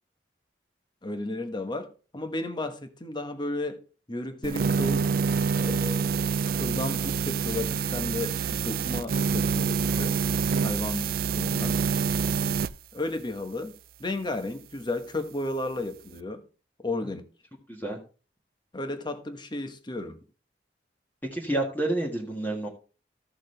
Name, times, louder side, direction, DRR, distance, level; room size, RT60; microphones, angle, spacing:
voice 1, 1.0-3.8 4.1-5.1 5.5-6.2 6.5-10.2 10.6-11.1 11.4-11.8 12.9-13.7 14.0-16.4 16.8-17.2 18.7-20.2, left 2 dB, 25° left, 1.1 m, -33 dB
sound 1, 4.4-12.7, right 5 dB, 55° right, 0.4 m, -26 dB
voice 2, 17.7-18.0 21.3-22.7, right 1 dB, 10° left, 1.6 m, -29 dB
14.5 x 6.4 x 3.2 m
head